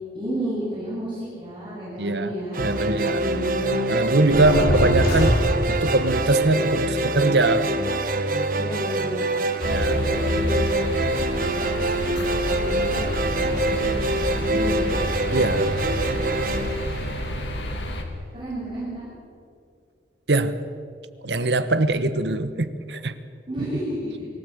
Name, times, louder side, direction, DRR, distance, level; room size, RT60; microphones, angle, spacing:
voice 1, 0.1-2.7 3.2-3.9 4.2-4.9 8.5-9.3 10.0-13.0 13.3-15.0 18.3-19.1 23.5-24.3, equal, 30° right, -9 dB, 7.8 m, -32 dB
voice 2, 2.0-2.3 2.6-3.2 3.9-5.4 5.7-7.7 9.6-10.0 15.3-15.7 20.3-20.5 21.2-23.1 23.6-23.7, right 2 dB, 75° right, 11 dB, 1.2 m, -22 dB
sound 1, 2.5-17.8, right 2 dB, 55° right, 1.4 m, -25 dB
sound 2, 4.3-6.0, equal, 55° left, 7.1 m, -23 dB
sound 3, 9.6-18.0, left 1 dB, 90° left, 2.7 m, -30 dB
24.0 x 16.5 x 7.9 m, 2.3 s
head